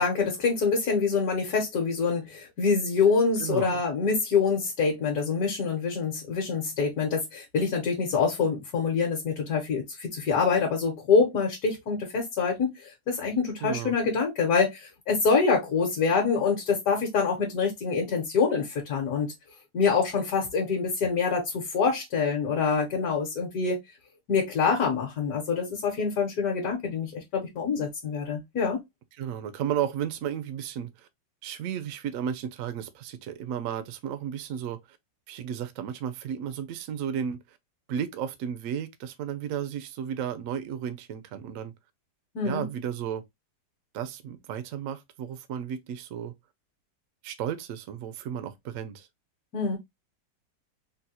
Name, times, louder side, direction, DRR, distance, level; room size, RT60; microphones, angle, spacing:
voice 1, 0.0-19.3 19.7-23.8 24.3-28.8 42.3-42.6 49.5-49.8, left 5 dB, 60° left, 1.3 m, -26 dB
voice 2, 3.4-3.8 13.6-14.0 29.2-31.1 31.4-34.8 35.3-37.6 37.9-41.7 42.4-43.2 43.9-46.3 47.2-49.1, right 9 dB, 80° right, 0.7 m, -33 dB
3.9 x 2.2 x 2.7 m
omnidirectional pair, 2.0 m